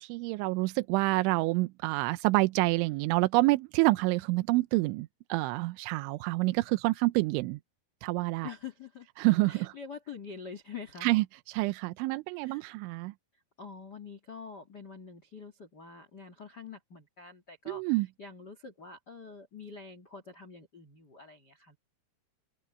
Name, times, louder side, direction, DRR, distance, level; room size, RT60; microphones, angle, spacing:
voice 1, 0.0-7.6 8.0-8.5 9.2-9.7 11.0-13.1 17.7-18.1, right 21 dB, 85° right, 2.8 m, -27 dB
voice 2, 8.4-9.1 9.5-11.1 12.3-12.6 13.6-21.8, left 5 dB, 85° left, 0.9 m, -46 dB
omnidirectional pair, 5.8 m